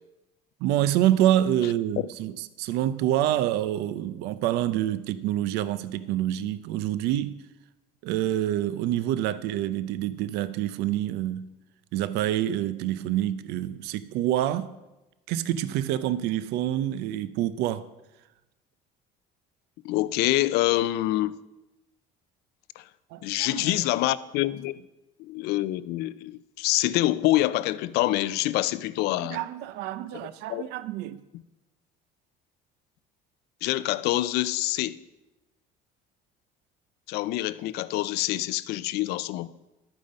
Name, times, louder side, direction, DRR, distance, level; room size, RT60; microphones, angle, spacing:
voice 1, 0.6-7.4 8.0-11.5 11.9-14.7 15.3-17.9 23.1-23.8 29.2-31.2, right 12 dB, 80° right, 0.6 m, -27 dB
voice 2, 19.8-21.4 22.8-22.9 23.2-24.8 25.2-29.4 30.5-30.7 33.6-35.0 37.1-39.6, left 16 dB, 75° left, 0.5 m, -26 dB
12.0 x 9.0 x 5.3 m
cardioid pair, 140°, 17 cm